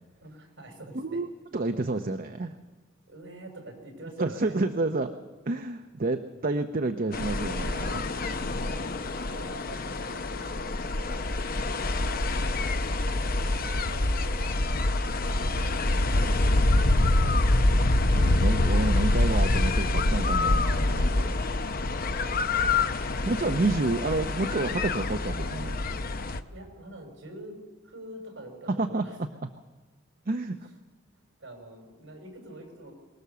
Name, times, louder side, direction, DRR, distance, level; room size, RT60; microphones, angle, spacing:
voice 1, 0.2-1.2 3.1-4.6 8.6-9.0 9.3-12.3 12.6-14.5 15.1-17.3 21.5-22.8 23.4-24.0 26.5-27.5 27.8-29.2 31.1-32.9, right 1 dB, 65° right, 3 dB, 5.4 m, -46 dB
voice 2, 0.9-1.3 1.5-2.6 4.2-5.1 5.5-8.1 18.1-21.3 23.2-25.8 28.7-29.0 29.4-29.5 30.3-30.6, right 2 dB, 45° right, 7 dB, 0.7 m, -29 dB
sound 1, 7.1-26.4, left 2 dB, 50° left, 0.8 m, -26 dB
23.5 x 20.0 x 6.9 m, 1.3 s
head